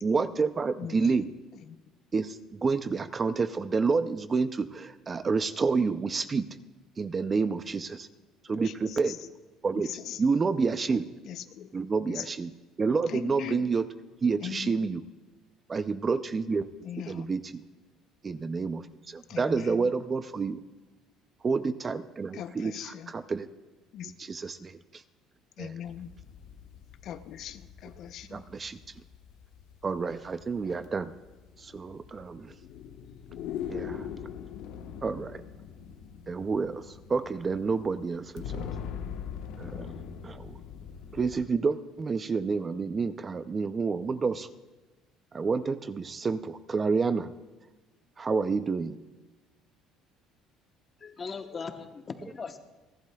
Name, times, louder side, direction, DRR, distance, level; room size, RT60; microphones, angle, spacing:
voice 1, 0.0-1.3 2.1-6.5 7.0-8.1 8.5-9.2 9.6-9.9 10.2-11.1 11.7-12.5 12.8-13.9 14.2-15.0 15.7-16.7 17.0-17.6 18.2-20.6 21.4-23.5 24.2-24.8 25.6-25.7 28.3-28.8 29.8-31.1 31.6-32.5 33.7-34.1 35.0-35.4 36.3-38.7 39.6-39.9 40.2-40.6 41.1-44.5 45.3-47.3 48.2-49.0, right 4 dB, 25° right, 12 dB, 0.4 m, -29 dB
voice 2, 0.7-1.2 1.7-1.8 8.6-9.3 9.7-10.2 11.2-11.7 12.1-12.3 13.1-13.7 14.4-14.8 16.8-17.2 19.3-19.9 22.3-23.1 23.9-24.1 25.6-26.1 27.0-28.4, left 10 dB, 55° left, 10 dB, 0.6 m, -40 dB
sound 1, 25.8-41.4, left 8 dB, 80° left, 1.1 m, -42 dB
voice 3, 51.0-52.6, left 5 dB, 30° left, 7 dB, 1.0 m, -39 dB
29.5 x 11.5 x 2.3 m, 1.2 s
cardioid pair, 140°, 0 cm